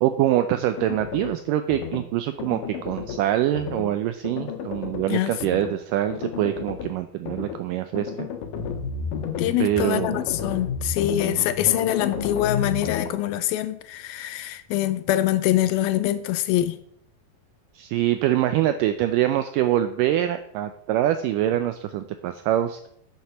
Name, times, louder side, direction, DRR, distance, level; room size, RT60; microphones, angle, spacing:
voice 1, 0.0-8.3 9.6-10.2 11.7-11.8 17.8-22.8, right 12 dB, 90° right, 10 dB, 1.9 m, -24 dB
sound 1, 0.8-1.4 1.7-2.0 2.4-3.2 3.5-3.9 4.2-5.0 5.4-5.7 6.1-6.9 7.2-7.6 7.9-13.1, left 7 dB, 65° left, 2.7 m, -31 dB
voice 2, 9.4-16.8, left 13 dB, 80° left, 13 dB, 2.4 m, -24 dB
9.4 x 7.4 x 6.7 m, 0.68 s
omnidirectional pair, 4.4 m